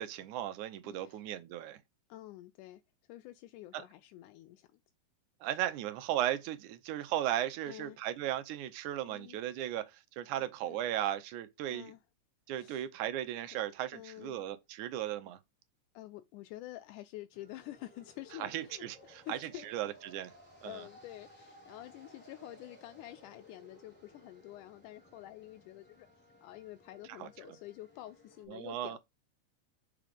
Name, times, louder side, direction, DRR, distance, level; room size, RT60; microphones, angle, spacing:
voice 1, 0.0-1.8 3.7-3.8 5.4-11.9 12.5-15.4 18.4-20.3 20.6-20.8 27.2-27.6 28.5-29.0, right 12 dB, 75° right, 2.1 m, -36 dB
voice 2, 0.8-1.2 2.1-2.8 3.1-4.8 7.7-8.0 9.1-9.4 10.4-10.8 11.7-12.0 12.5-12.9 13.4-13.6 13.9-14.5 15.9-19.7 20.6-26.1 26.4-29.0, left 15 dB, 80° left, 2.0 m, -49 dB
sound 1, 17.3-28.4, left 1 dB, 5° left, 1.8 m, -59 dB
6.3 x 4.9 x 5.2 m
omnidirectional pair, 3.7 m